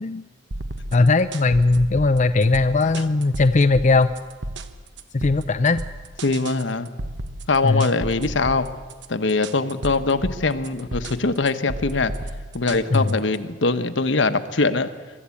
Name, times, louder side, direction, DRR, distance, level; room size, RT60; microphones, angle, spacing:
sound 1, 0.5-13.4, right 1 dB, 65° right, 1.2 m, -34 dB
voice 1, 0.9-4.1 5.1-5.8 7.6-7.9 12.9-13.1, left 3 dB, 40° left, 9 dB, 0.5 m, -18 dB
voice 2, 6.2-6.9 7.5-8.7 9.1-12.1 12.5-14.9, left 3 dB, 70° left, 10 dB, 1.1 m, -22 dB
24.0 x 13.0 x 8.5 m, 1.4 s
head